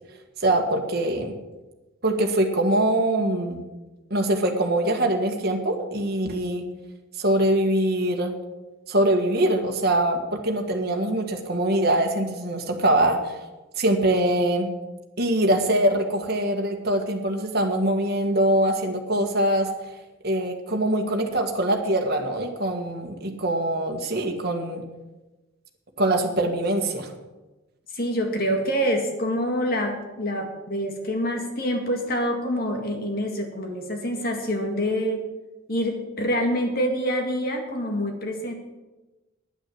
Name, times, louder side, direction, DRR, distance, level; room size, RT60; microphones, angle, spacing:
voice 1, 0.4-1.3 2.0-3.7 4.1-6.6 7.2-8.3 8.9-13.4 13.7-14.7 15.2-19.9 20.2-24.8 26.0-27.1, right 1 dB, 50° right, 3 dB, 1.7 m, -23 dB
voice 2, 27.9-35.2 35.7-38.5, equal, 45° left, 3 dB, 2.0 m, -26 dB
10.0 x 9.0 x 7.9 m, 1.1 s
head